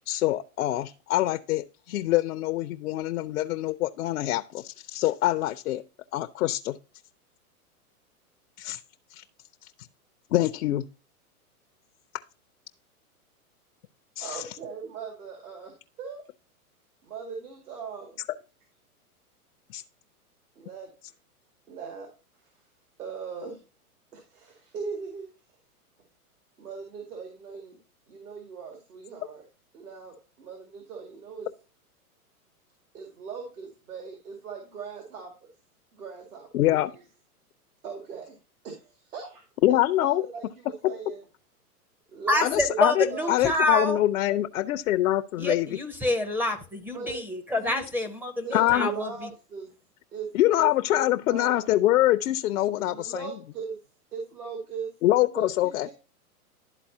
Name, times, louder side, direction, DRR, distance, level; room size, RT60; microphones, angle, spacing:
voice 1, 0.1-5.8 6.1-6.8 8.6-8.8 9.1-9.2 10.3-10.9 14.2-14.4 19.7-19.8 36.5-36.9 39.6-40.2 42.4-45.7 48.5-48.9 50.3-53.3 55.0-55.9, left 15 dB, 65° left, 0.6 m, -24 dB
voice 2, 14.2-16.2 17.0-18.2 20.6-20.9 21.7-22.1 23.0-23.6 24.1-25.3 26.6-27.8 28.1-29.4 29.7-31.5 32.9-35.5 35.9-36.8 37.8-38.4 38.6-39.4 39.7-41.2 42.1-42.8 43.1-43.3 46.9-47.2 47.5-47.9 48.4-49.7 50.1-50.3 50.5-50.7 50.9-51.7 52.7-53.8 54.1-54.9 55.3-55.9, right 5 dB, 75° right, 2.3 m, -39 dB
voice 3, 42.3-44.0 45.4-49.3, left 1 dB, 5° right, 0.5 m, -27 dB
12.0 x 4.1 x 2.7 m
hypercardioid pair, 130°, 45 cm